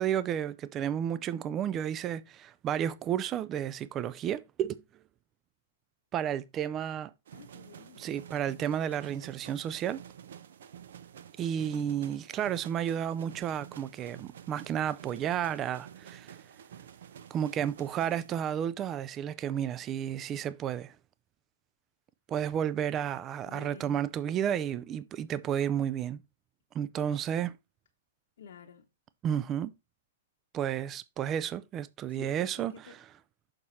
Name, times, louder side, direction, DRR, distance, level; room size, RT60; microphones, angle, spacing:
voice 1, 0.0-4.8 6.1-7.1 8.0-10.0 11.4-16.4 17.3-20.9 22.3-26.2 26.7-27.5 29.2-29.7 30.5-32.7, right 9 dB, 25° right, 0.3 m, -32 dB
voice 2, 7.3-8.0 11.7-12.2 23.5-24.0 28.4-28.8 32.1-33.0, left 7 dB, 75° left, 1.0 m, -51 dB
sound 1, 7.3-18.3, right 9 dB, 75° right, 0.7 m, -50 dB
6.6 x 4.1 x 4.2 m
hypercardioid pair, 130°, 0 cm